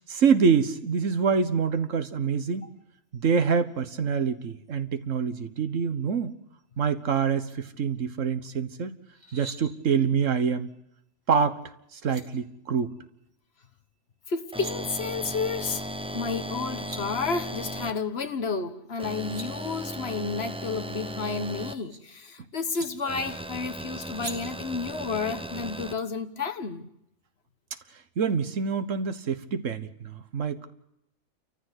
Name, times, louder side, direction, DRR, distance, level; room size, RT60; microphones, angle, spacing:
voice 1, 0.1-2.7 3.1-6.3 6.8-9.0 9.3-10.7 11.3-11.6 11.9-12.9 28.2-30.7, right 6 dB, 80° right, 1.6 m, -26 dB
sound 1, 9.1-9.6 11.6-11.7 12.0-12.2 14.3-14.7 16.4-16.5 16.7-17.0 18.9-19.5 21.0-22.0 22.7-22.9 24.2-24.4, right 2 dB, 60° right, 2.8 m, -42 dB
voice 2, 14.3-15.9 16.1-26.9, left 4 dB, 55° left, 1.5 m, -31 dB
sound 2, 14.5-17.9 19.0-21.7 23.1-25.9, right 1 dB, 5° right, 0.7 m, -36 dB
29.5 x 14.5 x 8.1 m
omnidirectional pair, 1.3 m